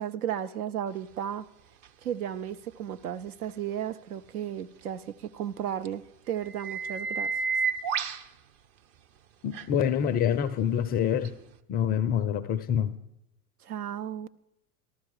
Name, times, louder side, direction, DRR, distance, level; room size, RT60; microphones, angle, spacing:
voice 1, 0.0-1.5 2.0-7.3 13.6-14.3, right 10 dB, 75° right, 0.7 m, -34 dB
sound 1, 1.8-1.9 5.8-5.9 6.3-8.2 9.5-9.7 11.2-11.3, right 5 dB, 40° right, 0.9 m, -30 dB
voice 2, 9.4-11.3 11.7-12.9, left 9 dB, 20° left, 0.4 m, -26 dB
14.0 x 12.5 x 4.8 m
hypercardioid pair, 95°, 45 cm